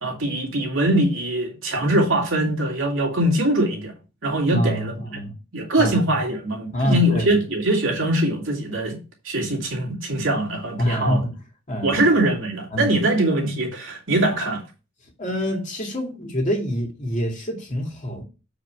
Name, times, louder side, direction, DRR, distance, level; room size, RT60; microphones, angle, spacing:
voice 1, 0.0-3.9 4.2-4.9 5.5-9.0 9.2-11.2 11.8-14.6, right 1 dB, 65° right, 2.7 m, -22 dB
voice 2, 4.5-5.3 5.8-6.1 6.7-7.4 10.8-11.2 11.7-11.9 12.7-13.0 15.2-18.2, equal, 35° left, 2.4 m, -25 dB
7.4 x 5.0 x 4.8 m
head